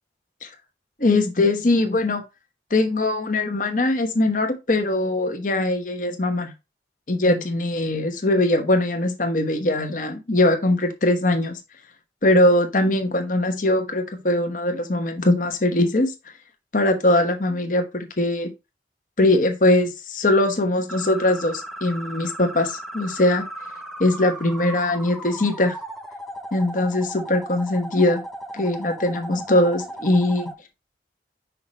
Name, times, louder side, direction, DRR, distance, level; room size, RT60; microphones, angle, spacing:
voice 1, 1.0-2.2 2.7-6.5 7.1-11.6 12.2-16.1 16.7-18.5 19.2-23.5 24.0-25.7 26.5-28.2 28.5-30.5, left 1 dB, 45° left, 1.1 m, -21 dB
sound 1, 20.9-30.5, right 1 dB, ahead, 0.5 m, -36 dB
5.7 x 3.1 x 5.4 m
head